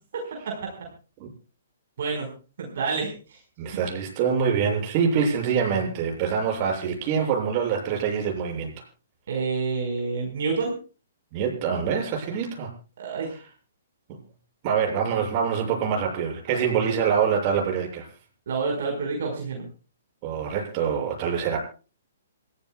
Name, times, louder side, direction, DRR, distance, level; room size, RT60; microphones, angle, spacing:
voice 1, 0.1-0.9 2.0-2.3 2.6-3.4 9.3-10.7 13.0-13.3 16.5-16.6 18.5-19.7, right 4 dB, 60° right, 1 dB, 5.1 m, -28 dB
voice 2, 3.6-8.7 11.3-12.7 13.1-13.2 14.6-18.1 20.2-21.6, right 7 dB, 40° right, 1 dB, 7.4 m, -25 dB
27.5 x 15.0 x 2.4 m, 0.36 s
hypercardioid pair, 125°, 0 cm